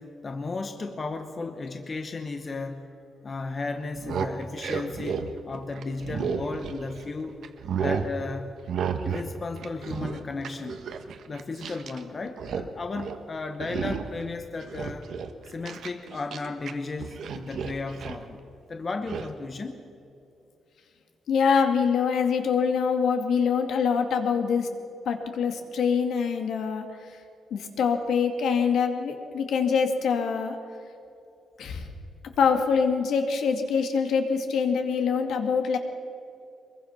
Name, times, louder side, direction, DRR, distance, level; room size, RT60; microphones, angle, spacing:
voice 1, 0.0-2.9 3.2-7.4 7.8-8.6 9.0-10.8 11.3-15.1 15.5-18.4 18.7-19.8, left 3 dB, 25° left, 6 dB, 1.0 m, -34 dB
sound 1, 3.9-7.1 7.4-8.1 8.7-9.3 9.6-12.0 12.3-12.7 13.0-13.2 13.6-14.2 14.6-16.7 17.0-18.2 19.1-19.3, right 6 dB, 60° right, 1.3 m, -32 dB
voice 2, 21.3-24.7 25.1-26.9 27.5-30.6 31.6-31.9 32.4-35.8, left 6 dB, 65° left, 5 dB, 2.3 m, -24 dB
24.5 x 22.0 x 5.9 m, 2.7 s
wide cardioid pair, 175°, 0 cm